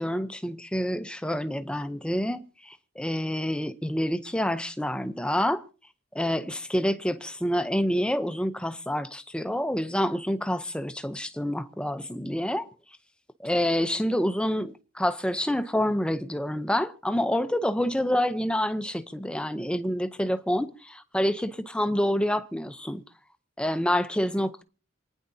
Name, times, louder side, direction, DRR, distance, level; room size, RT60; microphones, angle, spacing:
voice 1, 0.0-5.6 6.1-12.7 13.4-23.0 23.6-24.6, equal, 5° left, 0.7 m, -27 dB
27.5 x 10.0 x 2.8 m
head